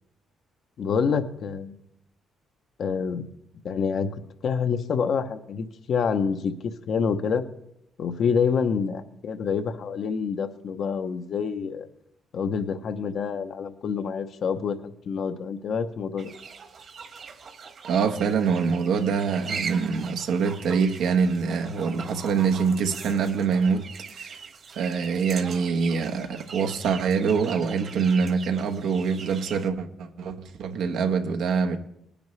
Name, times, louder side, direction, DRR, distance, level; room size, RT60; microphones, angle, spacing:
voice 1, 0.8-1.8 2.8-3.3 3.6-4.1 4.4-7.4 8.0-11.9 12.3-16.3, left 6 dB, 60° left, 0.8 m, -27 dB
sound 1, 16.2-29.7, right 5 dB, 55° right, 1.6 m, -41 dB
voice 2, 17.8-24.4 24.8-31.8, right 5 dB, 80° right, 1.1 m, -25 dB
18.5 x 10.0 x 3.2 m
cardioid pair, 90°, 0 cm